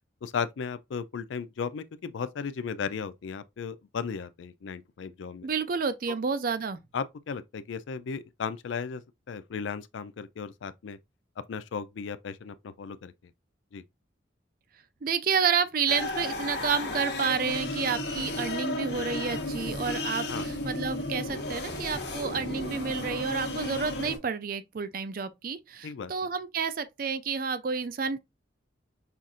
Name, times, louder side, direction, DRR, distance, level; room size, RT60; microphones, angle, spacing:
voice 1, 0.2-5.5 6.9-9.0 9.3-11.0 11.5-13.1 13.7-13.8 20.3-20.6 25.8-26.1, left 6 dB, 75° left, 0.4 m, -35 dB
voice 2, 5.4-6.8 15.0-28.2, right 6 dB, 45° right, 0.4 m, -30 dB
sound 1, 15.9-24.2, left 2 dB, 60° left, 1.1 m, -34 dB
5.6 x 2.5 x 2.4 m
head